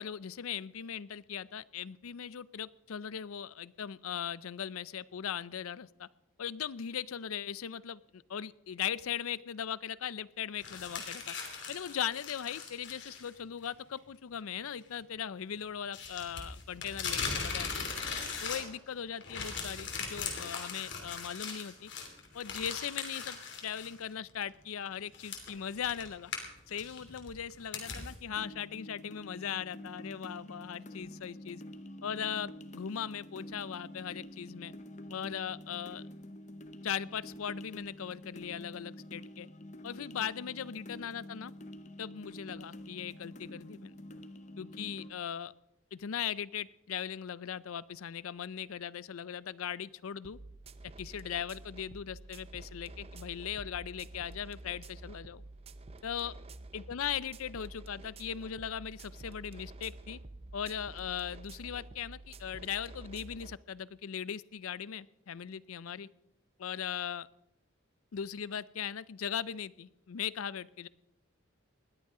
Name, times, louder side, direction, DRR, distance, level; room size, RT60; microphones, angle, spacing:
voice 1, 0.0-6.1 6.4-11.3 11.7-17.9 18.4-21.9 22.3-26.3 26.7-31.6 32.0-34.7 35.1-36.0 36.8-39.5 39.8-41.5 42.0-43.9 44.6-45.5 45.9-50.4 51.0-55.4 56.0-56.3 56.7-60.2 60.5-66.1 66.6-67.3 68.1-70.9, left 8 dB, 90° left, 19 dB, 0.5 m, -39 dB
sound 1, 10.6-13.3 13.6-13.7 15.9-18.9 19.2-23.9 24.3-24.4 25.1-28.1, left 5 dB, 55° left, 3.0 m, -39 dB
sound 2, 28.3-45.1, left 1 dB, 35° left, 0.8 m, -48 dB
sound 3, 50.2-63.6, right 2 dB, 30° right, 0.5 m, -49 dB
20.0 x 14.0 x 3.7 m, 0.81 s
head